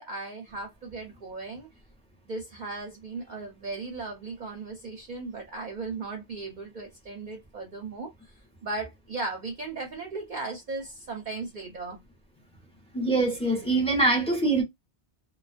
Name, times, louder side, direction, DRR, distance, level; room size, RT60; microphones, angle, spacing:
voice 1, 0.0-1.7 2.3-8.1 8.6-12.0, right 3 dB, 50° right, 0.7 m, -37 dB
voice 2, 12.9-14.6, right 2 dB, 5° left, 0.8 m, -23 dB
2.4 x 2.2 x 2.4 m
omnidirectional pair, 1.1 m